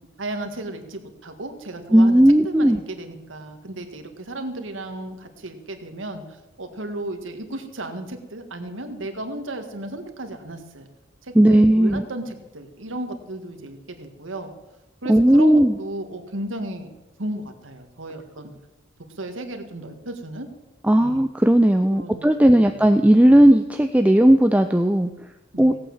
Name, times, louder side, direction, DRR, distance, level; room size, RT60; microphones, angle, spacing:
voice 1, 0.2-6.2 6.6-10.9 11.2-14.5 15.0-16.9 17.2-18.5 19.2-20.5 21.0-21.3 21.9-22.2 22.5-22.8 25.5-25.8, right 1 dB, 85° right, 6 dB, 1.9 m, -34 dB
voice 2, 1.9-2.8 11.3-12.1 15.1-15.8 20.8-25.1 25.6-25.7, right 1 dB, 5° right, 7 dB, 0.4 m, -15 dB
17.0 x 8.8 x 7.3 m, 1.1 s
head